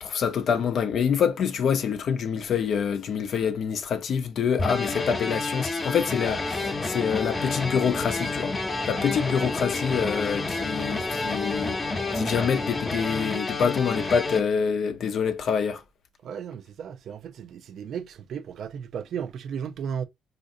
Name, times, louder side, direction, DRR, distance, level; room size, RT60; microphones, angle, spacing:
voice 1, 0.0-8.5 8.9-11.8 12.1-15.8, left 7 dB, 65° left, 0.5 m, -26 dB
sound 1, 4.6-14.4, left 3 dB, 30° left, 0.8 m, -30 dB
sound 2, 6.2-13.3, left 1 dB, 10° left, 0.3 m, -37 dB
voice 2, 16.2-20.0, right 8 dB, 70° right, 0.4 m, -35 dB
3.7 x 2.5 x 2.5 m
cardioid pair, 90°, 0 cm